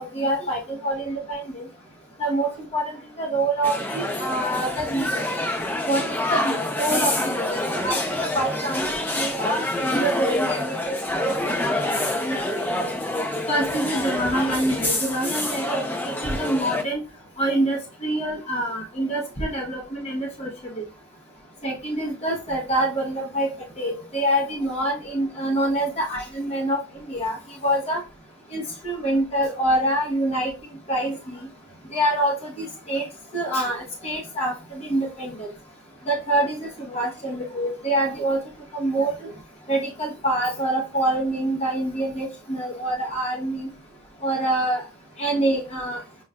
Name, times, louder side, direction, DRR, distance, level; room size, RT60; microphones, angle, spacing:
voice 1, 0.0-1.6 2.2-2.9 3.2-5.2 5.9-7.4 7.7-8.9 9.2-11.0 11.2-11.6 12.2-12.9 13.5-17.0 17.4-20.5 20.8-20.9 21.6-23.5 23.8-26.8 27.1-27.4 27.6-28.0 28.5-30.5 30.9-31.4 31.9-33.0 33.3-35.5 36.1-38.4 38.7-39.3 39.7-43.7 44.2-44.8 45.2-46.0, right 1 dB, 30° left, -1 dB, 0.8 m, -26 dB
sound 1, 3.6-16.8, left 1 dB, 10° left, 0.4 m, -27 dB
6.2 x 2.3 x 2.2 m, 0.31 s
head